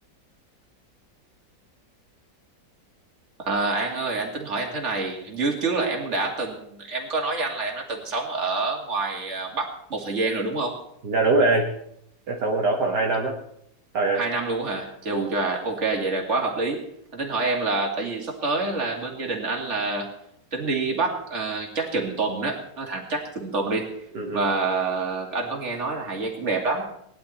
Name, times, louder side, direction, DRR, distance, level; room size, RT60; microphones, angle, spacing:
voice 1, 3.4-10.7 14.1-16.8 17.1-20.1 20.5-23.9 24.3-26.9, right 3 dB, 40° right, 0 dB, 2.8 m, -27 dB
voice 2, 11.0-11.7 12.3-13.4 13.9-14.2 15.1-15.3 24.1-24.5, right 3 dB, 65° right, -1 dB, 2.1 m, -23 dB
19.0 x 11.0 x 4.4 m, 0.72 s
omnidirectional pair, 1.9 m